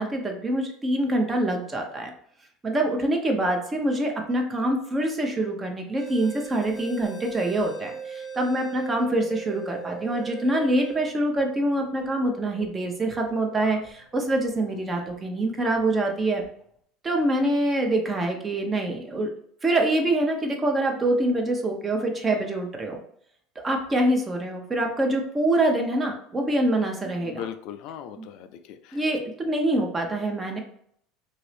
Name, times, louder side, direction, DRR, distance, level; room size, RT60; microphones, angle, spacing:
voice 1, 0.0-2.1 2.6-16.4 17.0-19.3 19.6-23.0 23.6-27.5 28.2-28.3 28.9-30.6, right 1 dB, 25° right, 2 dB, 0.9 m, -25 dB
sound 1, 6.0-15.2 15.7-15.8 16.4-16.6, right 6 dB, 5° left, 1.0 m, -40 dB
voice 2, 27.2-29.0, left 9 dB, 65° left, 8 dB, 0.3 m, -38 dB
3.0 x 2.6 x 3.3 m, 0.66 s
hypercardioid pair, 80°, 0 cm